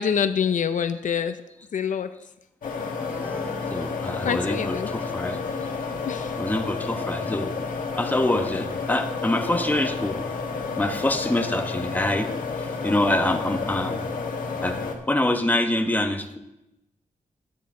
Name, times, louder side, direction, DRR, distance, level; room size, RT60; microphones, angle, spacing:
voice 1, 0.0-1.4 1.7-2.1 4.2-4.9 6.0-6.4, left 7 dB, 70° left, 10 dB, 0.5 m, -25 dB
sound 1, 2.6-14.9, left 4 dB, 85° left, 1.6 m, -30 dB
sound 2, 3.0-4.8, equal, 10° right, 4.1 m, -42 dB
voice 2, 3.7-5.4 6.4-7.5 7.9-10.2 10.8-12.3 12.6-14.0 14.6-16.4, left 1 dB, 10° left, 5 dB, 1.0 m, -25 dB
12.5 x 9.5 x 3.7 m, 0.90 s
wide cardioid pair, 105°, 14 cm